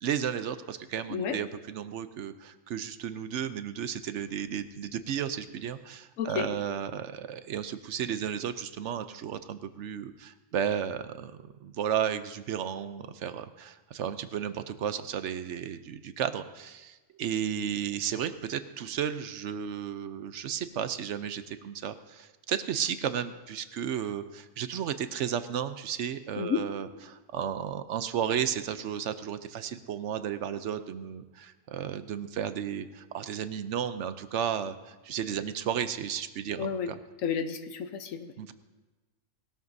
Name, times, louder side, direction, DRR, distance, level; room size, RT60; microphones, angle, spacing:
voice 1, 0.0-37.0 38.4-38.5, right 8 dB, 70° right, 11 dB, 0.9 m, -33 dB
voice 2, 6.2-6.5 26.4-26.7 36.6-36.9 37.2-38.3, left 7 dB, 85° left, 8 dB, 1.2 m, -31 dB
19.5 x 13.0 x 2.7 m, 1.2 s
omnidirectional pair, 1.3 m